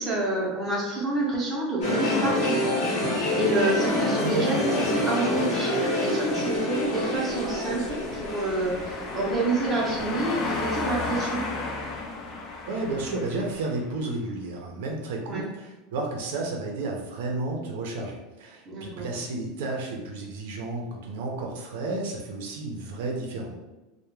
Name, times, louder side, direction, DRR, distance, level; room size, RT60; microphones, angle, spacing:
voice 1, 0.0-2.6 3.4-5.7 6.0-11.4 15.2-15.4 18.7-19.1, right 2 dB, 20° right, -4 dB, 0.6 m, -28 dB
sound 1, 1.8-9.8 10.2-10.3, left 1 dB, 50° left, 0.9 m, -27 dB
sound 2, 7.2-13.9, left 3 dB, 30° left, 0.4 m, -34 dB
voice 2, 12.7-23.5, right 2 dB, 75° right, 0 dB, 0.5 m, -32 dB
2.2 x 2.1 x 3.0 m, 1.1 s
supercardioid pair, 165°, 0 cm